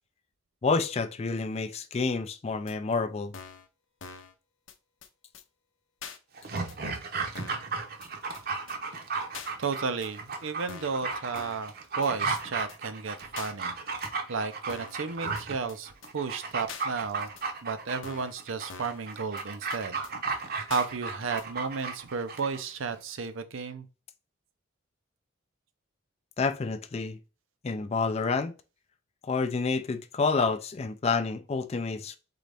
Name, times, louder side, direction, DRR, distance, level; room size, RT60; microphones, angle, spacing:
voice 1, 0.6-3.3 26.4-27.2 27.6-28.5 29.2-32.2, left 4 dB, 30° left, 0.4 m, -28 dB
sound 1, 2.7-2.8 3.3-3.7 4.0-4.3 4.7-4.8 5.0-5.1 5.3-5.4 6.0-6.2 6.7-6.8 7.3-7.7 8.0-8.1 8.3-8.4 8.7-8.8 9.3-9.5 10.0-10.1 10.7-11.0 11.3-11.7 12.0-12.1 12.4-12.5 12.7-12.8 13.4-13.5 14.0-14.1 14.7-15.0 15.4-15.5 15.7-15.8 16.0-16.1 16.7-16.9 17.4-17.5 18.0-18.4 18.7-19.0 19.4-19.5 19.7-19.8 20.0-20.1 20.7-20.9 21.4-21.5, left 6 dB, 70° left, 0.6 m, -44 dB
Dog, 6.3-22.6 22.9-23.0, right 4 dB, 50° right, 0.8 m, -35 dB
voice 2, 9.6-13.7 14.3-17.3 17.6-20.0 20.7-23.9, right 5 dB, 80° right, 0.6 m, -33 dB
4.0 x 3.9 x 3.4 m
head